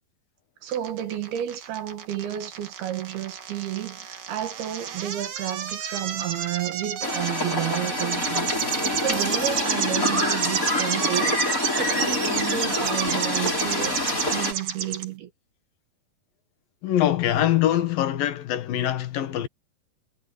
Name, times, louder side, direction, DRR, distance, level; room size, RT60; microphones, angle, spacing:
voice 1, 0.6-11.4 11.7-14.0 14.3-15.3, right 12 dB, 75° right, 3.4 m, -31 dB
sound 1, 0.7-15.0, right 8 dB, 60° right, 3.6 m, -30 dB
sound 2, 7.0-14.5, left 2 dB, 20° left, 6.3 m, -27 dB
voice 2, 16.8-19.5, left 12 dB, 70° left, 3.1 m, -23 dB
omnidirectional pair, 4.5 m